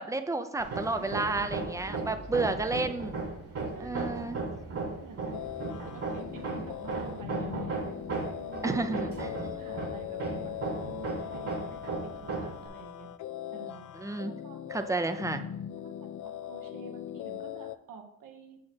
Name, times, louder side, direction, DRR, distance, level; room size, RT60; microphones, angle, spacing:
voice 1, 0.0-3.2 3.8-4.4 8.6-9.3 13.9-14.3 14.7-15.4, right 3 dB, 10° right, 9 dB, 0.6 m, -31 dB
Hammer, 0.6-12.7, right 3 dB, 45° right, 1.7 m, -36 dB
voice 2, 1.8-3.0 3.7-4.5 5.0-8.0 8.3-8.9 9.2-13.1 13.5-13.9 14.2-14.6 14.9-15.2 15.8-18.6, right 6 dB, 75° right, 3 dB, 1.3 m, -49 dB
sound 1, 5.3-17.8, left 11 dB, 65° left, 0.4 m, -40 dB
7.2 x 4.7 x 4.5 m, 0.78 s
cardioid pair, 90°, 32 cm